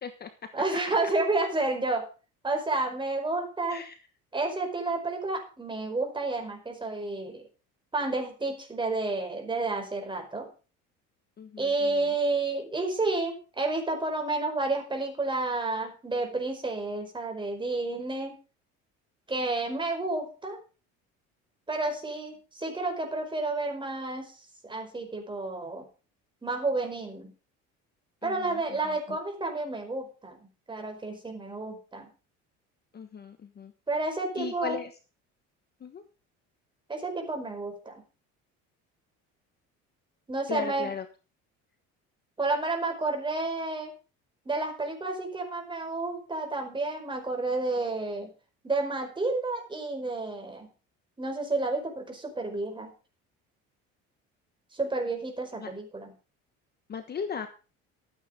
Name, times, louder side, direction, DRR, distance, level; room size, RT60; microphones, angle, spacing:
voice 1, 0.5-2.0 2.4-3.8 4.3-7.4 7.9-10.5 11.6-18.3 19.3-20.6 21.7-24.4 24.6-25.8 26.4-27.3 28.2-30.4 30.7-32.1 33.9-34.8 36.9-37.9 40.3-40.9 42.4-43.9 44.4-48.3 48.6-50.7 51.2-52.9 54.7-56.1, right 2 dB, 15° right, 3 dB, 5.0 m, -30 dB
voice 2, 11.4-12.1 28.2-29.2 32.9-33.7 34.3-34.9 35.8-36.0 40.5-41.1 55.6-55.7 56.9-57.5, left 6 dB, 35° left, 8 dB, 1.3 m, -37 dB
13.5 x 9.3 x 5.2 m, 0.34 s
cardioid pair, 120°, 30 cm